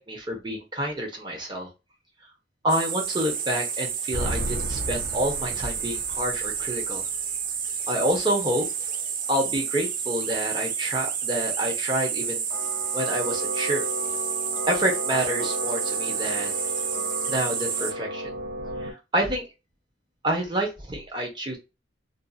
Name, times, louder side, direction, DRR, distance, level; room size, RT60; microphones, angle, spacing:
voice 1, 0.0-1.7 2.6-7.0 7.9-8.7 9.3-12.5 12.9-13.9 14.7-16.5 17.3-18.3 18.8-19.5 20.2-21.6, right 1 dB, 25° right, 0 dB, 0.8 m, -28 dB
sound 1, 2.7-17.9, right 7 dB, 50° right, 0.5 m, -30 dB
sound 2, 4.1-7.0 12.5-18.9, equal, 65° right, 1.5 m, -34 dB
2.6 x 2.5 x 2.4 m, 0.26 s
head